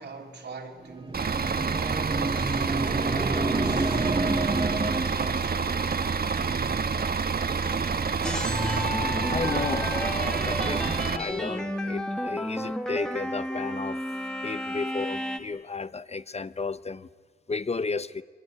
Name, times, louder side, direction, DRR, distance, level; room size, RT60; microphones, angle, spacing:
voice 1, 0.0-2.6 3.1-5.8 6.3-6.9 7.2-8.0, right 3 dB, 80° right, 3.4 m, -42 dB
sound 1, 0.9-5.5, right 2 dB, 25° right, 1.9 m, -29 dB
Bus / Idling, 1.1-11.2, right 5 dB, 60° right, 1.2 m, -28 dB
sound 2, 8.2-15.4, left 1 dB, 5° left, 1.7 m, -32 dB
voice 2, 9.2-14.0 14.4-17.1 17.5-18.2, left 4 dB, 35° left, 0.7 m, -33 dB
24.5 x 23.5 x 9.6 m
wide cardioid pair, 125°, 18 cm